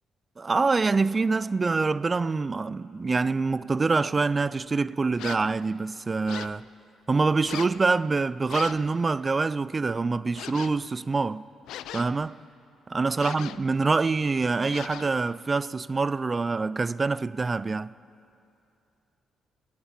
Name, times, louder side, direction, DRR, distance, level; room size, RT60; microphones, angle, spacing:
voice 1, 0.4-6.7 7.1-11.5 11.9-12.4 12.9-17.9, right 4 dB, 35° right, 0.3 m, -25 dB
sound 1, 5.2-5.6 6.3-6.6 7.4-7.8 8.5-8.9 10.3-10.8 11.7-12.3 13.2-13.7 14.7-15.2, left 12 dB, 80° left, 0.4 m, -39 dB
20.0 x 7.2 x 8.7 m
supercardioid pair, 60°, 0 cm